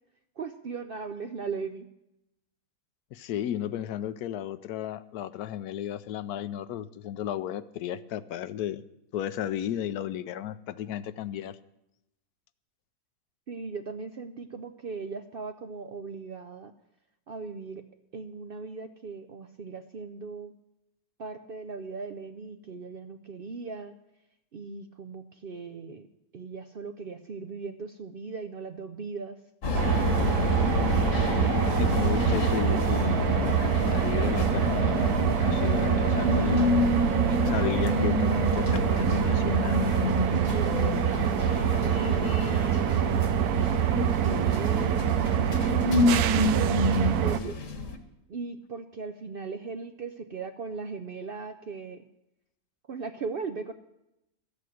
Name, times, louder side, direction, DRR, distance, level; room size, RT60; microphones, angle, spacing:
voice 1, 0.4-1.9 13.5-16.7 17.3-17.8 18.1-20.5 21.2-24.0 24.5-26.1 26.3-29.4 40.5-42.7 43.1-47.6 48.3-52.0 52.9-53.7, right 4 dB, 60° right, 8 dB, 0.6 m, -38 dB
voice 2, 3.1-8.8 9.1-11.6 31.3-33.2 33.7-36.6 37.4-40.1, left 11 dB, 80° left, 14 dB, 1.1 m, -34 dB
sound 1, 29.6-48.0, left 3 dB, 60° left, 1.6 m, -28 dB
sound 2, 29.7-47.4, right 10 dB, 85° right, 1.2 m, -26 dB
13.0 x 8.5 x 7.8 m, 0.87 s
omnidirectional pair, 1.6 m